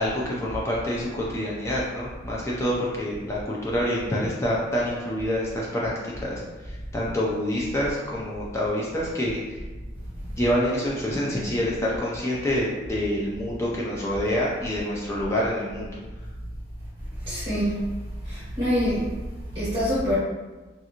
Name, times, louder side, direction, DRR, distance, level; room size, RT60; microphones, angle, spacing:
voice 1, 0.0-6.4 6.7-9.6 10.4-16.0, equal, 15° left, -5 dB, 0.3 m, -27 dB
voice 2, 17.2-17.8 18.2-19.1 19.5-20.1, equal, 25° right, -12 dB, 0.8 m, -25 dB
2.5 x 2.4 x 2.8 m, 1.2 s
head